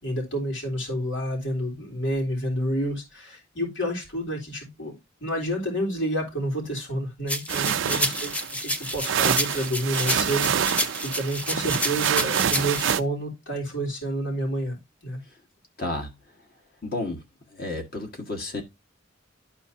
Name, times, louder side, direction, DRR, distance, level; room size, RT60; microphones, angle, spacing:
voice 1, 0.0-8.3 8.6-15.2, right 1 dB, 80° left, 3.5 m, -29 dB
sound 1, 7.3-12.9, left 1 dB, 5° left, 0.5 m, -29 dB
sound 2, 7.5-13.0, right 8 dB, 80° right, 0.5 m, -26 dB
voice 2, 7.6-8.0 15.8-16.1 16.8-17.2 17.5-18.6, left 2 dB, 50° left, 1.6 m, -32 dB
12.0 x 4.4 x 2.8 m
head